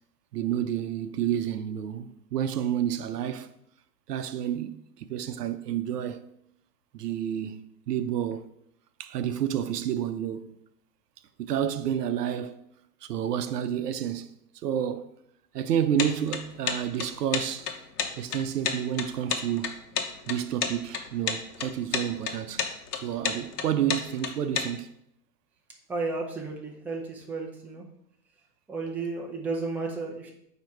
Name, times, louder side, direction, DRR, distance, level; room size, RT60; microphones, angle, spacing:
voice 1, 0.3-3.5 4.1-6.3 6.9-8.5 9.0-10.5 11.4-12.6 13.0-14.3 14.6-15.1 15.5-17.7 18.2-19.7 20.3-22.6 23.0-24.9, right 10 dB, 75° right, 0.8 m, -30 dB
sound 1, 16.0-24.7, left 7 dB, 70° left, 1.2 m, -30 dB
voice 2, 25.9-27.8 28.7-30.3, right 3 dB, 5° right, 0.5 m, -33 dB
8.7 x 2.9 x 4.6 m
hypercardioid pair, 125°, 48 cm